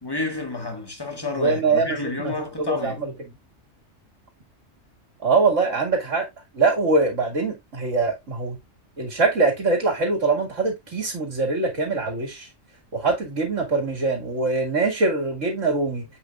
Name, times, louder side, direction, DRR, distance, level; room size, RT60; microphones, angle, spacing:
voice 1, 0.0-3.1, left 2 dB, 20° left, 1.7 m, -30 dB
voice 2, 1.4-2.3 2.6-3.1 5.2-6.3 6.5-8.6 9.0-12.5 12.9-16.1, right 3 dB, 90° right, 2.4 m, -23 dB
7.8 x 6.2 x 2.4 m
omnidirectional pair, 1.3 m